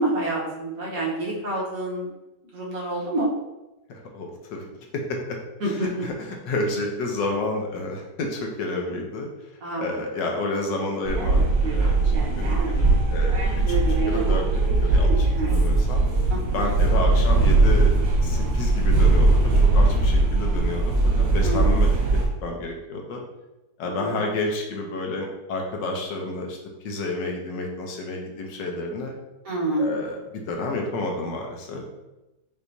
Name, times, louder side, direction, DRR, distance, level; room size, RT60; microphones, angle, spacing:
voice 1, 0.0-2.1 2.5-3.3 5.6-6.1 9.6-9.9 16.3-16.7 21.4-21.7 23.8-24.2 29.4-29.9, right 1 dB, 55° right, -6 dB, 1.5 m, -27 dB
voice 2, 3.9-4.6 4.9-5.4 5.6-9.3 9.8-11.4 11.7-16.1 16.5-17.9 18.2-23.2 23.8-26.6 26.8-29.1 29.8-31.8, left 2 dB, 75° left, 1 dB, 1.4 m, -30 dB
sound 1, 11.0-22.3, right 2 dB, 85° right, 1.7 m, -20 dB
5.5 x 2.9 x 2.7 m, 0.99 s
omnidirectional pair, 1.9 m